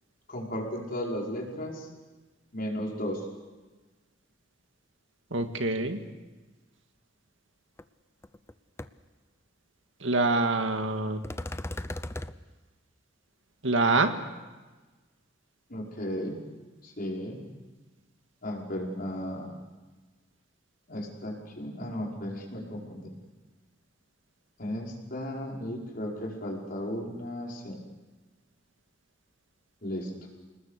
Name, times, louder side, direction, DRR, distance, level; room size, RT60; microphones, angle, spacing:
voice 1, 0.3-1.9 2.5-3.3 15.7-16.4 16.8-17.4 18.4-19.5 20.9-23.1 24.6-27.8 29.8-30.1, equal, 50° left, -1 dB, 5.6 m, -35 dB
voice 2, 5.3-6.0 10.0-11.2 13.6-14.1, right 3 dB, 80° right, 6 dB, 2.0 m, -25 dB
sound 1, 7.8-7.9 8.2-8.5 8.8-8.9 11.2-12.3, left 1 dB, 15° left, 0.7 m, -36 dB
29.0 x 20.0 x 6.7 m, 1.2 s
head